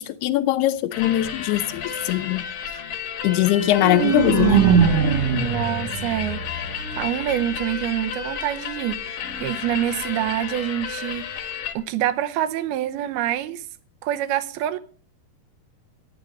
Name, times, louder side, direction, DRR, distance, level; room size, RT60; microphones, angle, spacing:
voice 1, 0.0-2.4 3.2-4.7, left 14 dB, 80° left, 2.8 m, -21 dB
sound 1, 0.9-11.7, left 7 dB, 60° left, 2.7 m, -32 dB
sound 2, 3.5-7.5, right 7 dB, 60° right, 1.8 m, -22 dB
voice 2, 5.3-11.5 11.8-13.7 14.0-14.8, right 12 dB, 75° right, 2.7 m, -26 dB
14.0 x 10.5 x 5.2 m
omnidirectional pair, 4.6 m